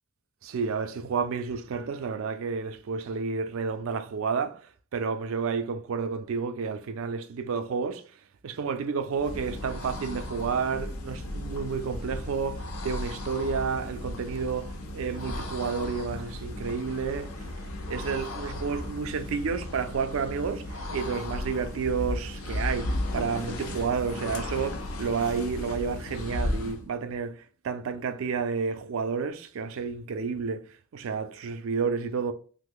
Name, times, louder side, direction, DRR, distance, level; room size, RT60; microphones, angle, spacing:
voice 1, 0.4-4.6 4.9-8.0 8.4-17.5 17.9-30.6 30.9-32.3, right 5 dB, 70° right, 0.4 m, -30 dB
sound 1, 9.1-26.9, left 1 dB, 85° left, 0.5 m, -35 dB
3.0 x 2.0 x 3.5 m
head